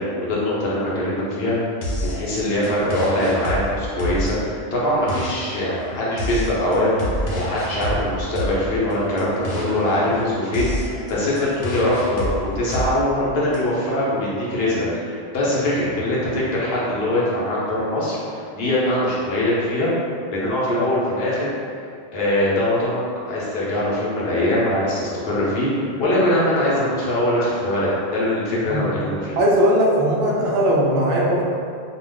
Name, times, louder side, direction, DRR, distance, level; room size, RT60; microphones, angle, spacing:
voice 1, 0.0-1.6 2.0-7.0 7.3-19.9 20.3-21.5 22.1-29.4, left 1 dB, 60° left, -7 dB, 0.9 m, -22 dB
sound 1, 1.8-13.6, equal, 85° left, 1.0 m, -29 dB
voice 2, 29.4-31.4, equal, 65° right, -3 dB, 0.8 m, -18 dB
2.4 x 2.3 x 3.3 m, 2.3 s
omnidirectional pair, 1.2 m